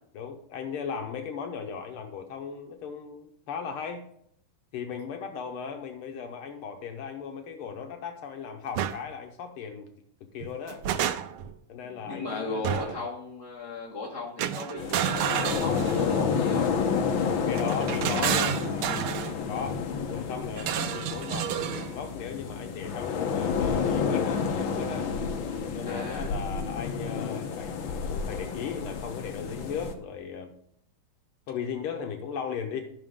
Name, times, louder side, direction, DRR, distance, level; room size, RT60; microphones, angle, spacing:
voice 1, 0.1-4.0 4.7-9.9 10.3-10.8 11.7-13.0 17.5-18.6 19.5-19.8 20.1-25.1 25.7-30.5 31.5-32.8, left 6 dB, 85° left, 5 dB, 1.9 m, -37 dB
sound 1, 8.7-9.0 10.4-11.5 12.6-13.1 14.4-16.2 17.5-19.3 20.6-21.9, right 10 dB, 80° right, 1.5 m, -30 dB
voice 2, 12.0-16.7 25.9-26.3, left 2 dB, 50° left, -3 dB, 3.0 m, -36 dB
sound 2, 14.8-29.9, left 6 dB, 70° left, 1.6 m, -30 dB
12.5 x 6.1 x 3.7 m, 0.67 s
omnidirectional pair, 2.4 m